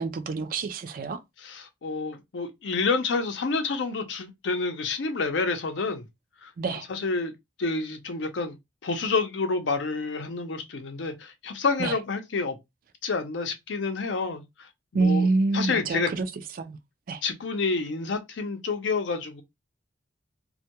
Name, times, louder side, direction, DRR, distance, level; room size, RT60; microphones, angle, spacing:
voice 1, 0.0-1.2 6.6-6.9 11.8-11.9 14.9-16.3 16.6-16.8 17.1-17.2, right 3 dB, 50° right, 0.3 m, -26 dB
voice 2, 1.4-6.0 6.4-6.5 6.9-7.3 7.6-8.6 8.8-12.6 13.0-14.7 14.9-16.1 17.2-19.4, left 4 dB, 70° left, 0.5 m, -29 dB
2.2 x 2.2 x 2.8 m
head